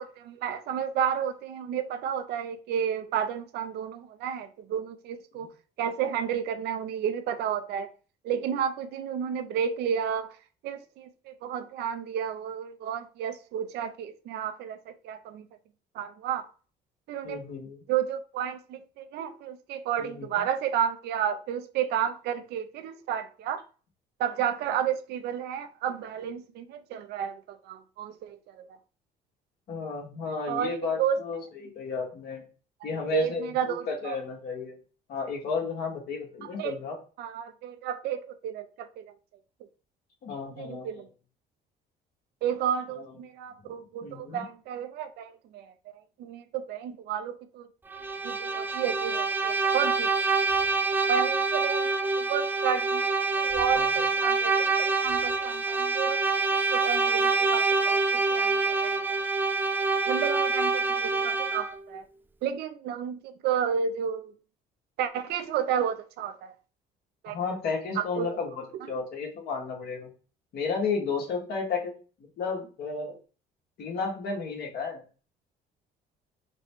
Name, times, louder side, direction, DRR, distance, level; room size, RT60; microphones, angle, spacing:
voice 1, 0.0-5.5 5.8-7.9 8.2-10.4 10.6-15.5 15.9-16.5 17.1-17.4 17.9-23.6 24.2-28.7 30.5-31.2 33.1-34.2 36.4-36.7 37.2-39.1 40.6-41.1 42.4-45.7 46.2-47.7 48.2-50.1 51.1-56.2 56.7-59.2 60.1-62.0 62.4-64.3 65.0-66.5 67.2-67.4 68.0-68.3, right 8 dB, 80° right, 0.6 m, -31 dB
voice 2, 17.2-17.8 20.0-20.4 29.7-32.4 32.8-34.7 35.1-36.9 40.2-40.9 43.1-43.2 44.0-44.4 53.7-53.9 67.3-70.1 70.5-71.9 72.2-73.1 73.8-75.0, left 5 dB, 70° left, 1.5 m, -33 dB
Bowed string instrument, 47.9-61.8, right 4 dB, 10° right, 0.3 m, -26 dB
4.1 x 2.3 x 4.4 m
cardioid pair, 110°, 17 cm